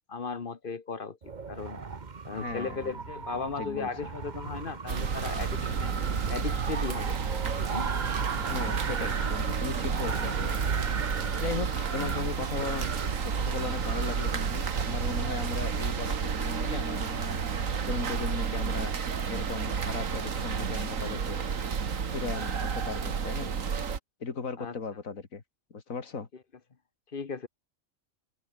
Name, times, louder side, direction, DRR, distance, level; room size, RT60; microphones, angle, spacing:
voice 1, 0.1-1.2 1.5-1.8 2.2-5.9 6.3-7.2 7.6-7.9 24.6-24.7 27.1-27.5, left 5 dB, 45° left, 1.3 m, -36 dB
Wind, 1.2-14.9, right 5 dB, 35° right, 1.2 m, -38 dB
voice 2, 2.3-3.0 3.6-3.9 8.4-10.6 11.4-12.9 13.2-17.4 17.9-18.9 19.3-21.4 22.1-23.5 24.2-25.4 25.7-26.3, left 5 dB, 85° left, 2.6 m, -37 dB
sound 1, 4.9-24.0, right 6 dB, 75° right, 2.0 m, -31 dB
omnidirectional pair, 1.4 m